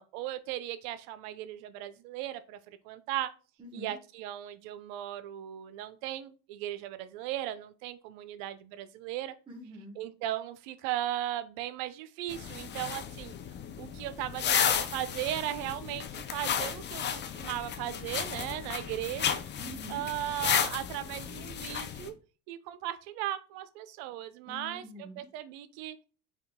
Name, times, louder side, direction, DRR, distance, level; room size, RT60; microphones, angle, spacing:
voice 1, 0.0-3.3 3.7-9.3 10.0-13.3 13.8-19.4 19.9-22.1 22.5-24.8 25.2-26.0, right 13 dB, 75° right, 13 dB, 0.5 m, -37 dB
voice 2, 3.6-3.9 9.5-10.0 19.6-20.0 24.5-25.3, equal, 15° right, -1 dB, 1.2 m, -45 dB
sound 1, 12.3-22.1, left 8 dB, 30° left, 0.5 m, -33 dB
3.6 x 2.8 x 3.5 m, 0.36 s
supercardioid pair, 100°, 36 cm